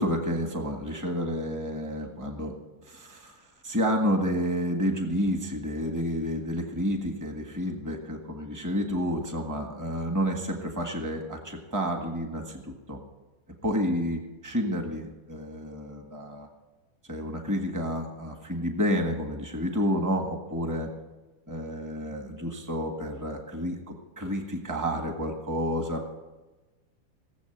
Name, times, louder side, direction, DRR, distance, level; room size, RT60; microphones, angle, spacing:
voice 1, 0.0-2.6 2.8-3.4 3.6-13.0 13.6-16.5 17.1-20.9 21.5-26.1, equal, 20° right, 4 dB, 0.4 m, -30 dB
18.0 x 7.5 x 8.0 m, 1.2 s
omnidirectional pair, 3.5 m